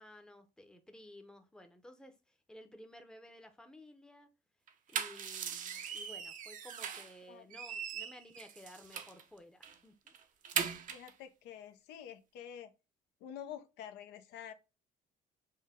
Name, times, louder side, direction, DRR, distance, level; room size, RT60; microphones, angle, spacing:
voice 1, 0.0-4.3 4.9-10.1, left 1 dB, 5° left, 0.6 m, -55 dB
sound 1, 4.7-7.2 7.5-9.2 9.6-9.8 10.1-11.1, right 7 dB, 50° right, 0.5 m, -40 dB
voice 2, 10.9-12.7 13.2-14.5, left 9 dB, 85° left, 0.6 m, -48 dB
5.5 x 2.1 x 3.4 m
cardioid pair, 110°, 17 cm